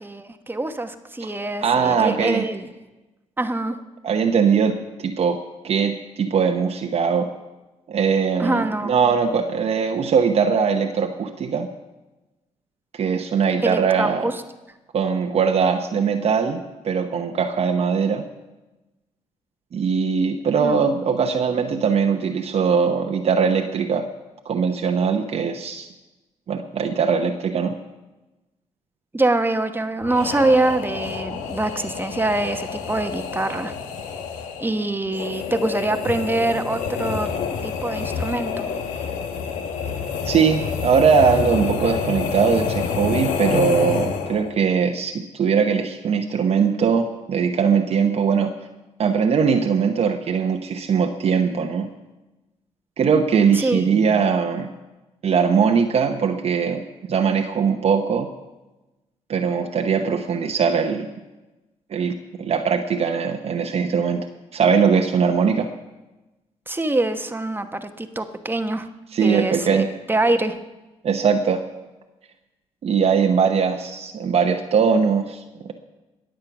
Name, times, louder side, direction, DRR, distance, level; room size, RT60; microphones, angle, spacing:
voice 1, 0.0-2.7 3.4-3.8 8.4-8.9 13.6-14.4 20.6-20.9 29.1-33.7 34.6-37.3 37.6-38.7 53.5-53.8 66.7-68.9 69.2-70.5, right 2 dB, 15° right, 8 dB, 1.0 m, -24 dB
voice 2, 1.6-2.4 4.0-4.7 5.0-5.4 5.6-7.3 7.9-11.7 12.9-14.2 14.9-18.3 19.7-24.0 24.4-25.9 26.5-27.7 40.2-48.5 49.0-51.9 53.0-54.7 55.2-58.3 59.3-61.1 61.9-64.2 64.5-65.7 69.1-69.9 71.0-71.6 72.8-75.4, right 6 dB, 55° right, 3 dB, 1.0 m, -20 dB
sound 1, 30.0-44.6, left 6 dB, 85° left, 1.1 m, -28 dB
21.0 x 7.6 x 6.0 m, 1.1 s
supercardioid pair, 70°, 13 cm